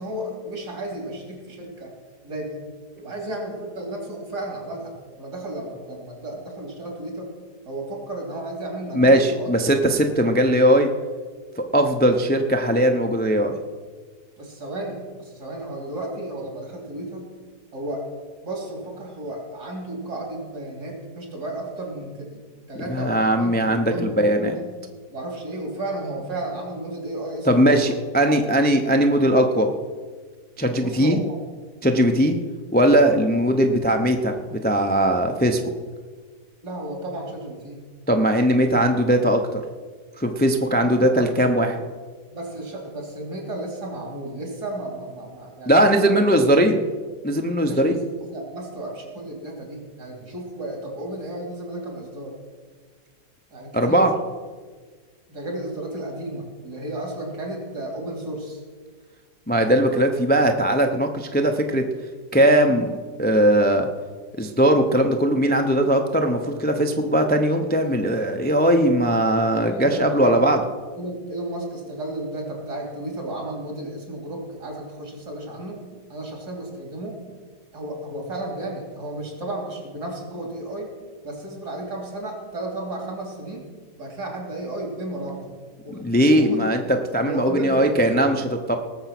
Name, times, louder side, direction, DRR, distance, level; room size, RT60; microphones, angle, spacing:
voice 1, 0.0-1.9 2.2-2.6 3.0-7.3 7.7-9.5 14.4-17.3 17.7-18.0 18.4-24.7 25.1-28.0 28.3-28.5 30.8-31.4 36.6-37.8 38.7-38.9 40.8-41.4 42.3-46.7 47.7-52.3 53.5-54.1 55.3-58.6 69.5-70.4 71.0-75.8 76.1-77.2 77.7-80.9 81.2-83.7 84.0-85.5 85.8-86.7 87.2-88.0, right 1 dB, 70° right, 0 dB, 3.7 m, -33 dB
voice 2, 8.9-10.9 11.6-13.6 22.9-24.6 27.5-29.7 30.6-31.2 31.8-32.4 32.7-35.6 38.1-39.6 40.2-41.8 45.7-46.8 47.2-48.0 53.7-54.1 59.5-61.8 62.3-63.9 64.4-70.6 86.0-86.8 87.1-88.8, right 1 dB, 15° left, 4 dB, 0.3 m, -19 dB
18.5 x 7.0 x 6.0 m, 1.5 s
omnidirectional pair, 1.8 m